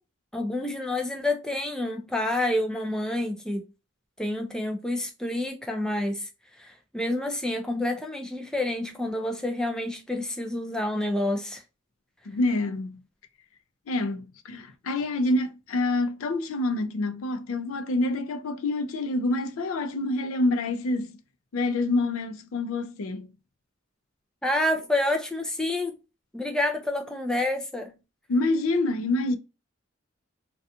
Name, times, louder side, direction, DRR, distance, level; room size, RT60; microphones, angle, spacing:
voice 1, 0.3-3.6 4.2-6.3 6.6-11.6 24.4-26.0 26.3-27.9, left 1 dB, 5° left, 0.4 m, -28 dB
voice 2, 12.3-13.0 13.9-21.2 21.5-23.3 28.3-29.4, left 2 dB, 85° left, 0.4 m, -27 dB
2.4 x 2.2 x 2.6 m
head